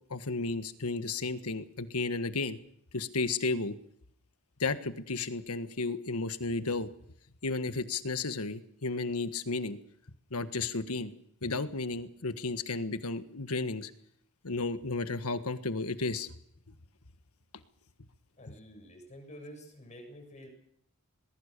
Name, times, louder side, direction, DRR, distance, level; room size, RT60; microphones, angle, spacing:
voice 1, 0.1-2.6 2.9-3.7 4.6-6.9 7.4-9.8 10.3-11.1 11.4-13.9 14.4-16.3, left 3 dB, 90° left, 10 dB, 1.5 m, -33 dB
voice 2, 18.4-20.5, equal, 35° left, 3 dB, 7.4 m, -49 dB
21.5 x 20.5 x 6.8 m, 0.68 s
head